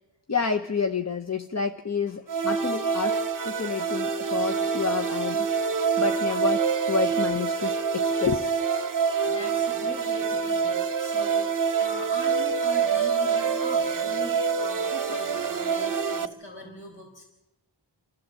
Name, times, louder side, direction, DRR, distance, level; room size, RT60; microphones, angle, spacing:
voice 1, 0.3-5.5 6.0-8.5, left 5 dB, 40° left, 7 dB, 0.8 m, -29 dB
sound 1, 2.3-16.3, right 6 dB, 50° right, 0.8 m, -26 dB
voice 2, 9.2-17.2, left 1 dB, 85° left, 0 dB, 4.5 m, -41 dB
29.0 x 13.0 x 7.6 m, 0.96 s
wide cardioid pair, 60°, 42 cm